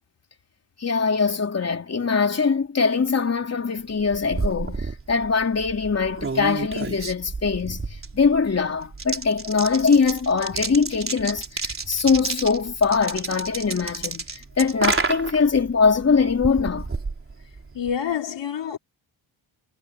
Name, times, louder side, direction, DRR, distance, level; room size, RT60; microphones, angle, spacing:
voice 1, 0.8-16.9, left 5 dB, 30° left, 3.4 m, -22 dB
sound 1, 3.9-17.9, right 4 dB, 25° right, 4.0 m, -31 dB
voice 2, 17.7-18.8, left 8 dB, 65° left, 3.2 m, -27 dB
wide cardioid pair, 145°, 47 cm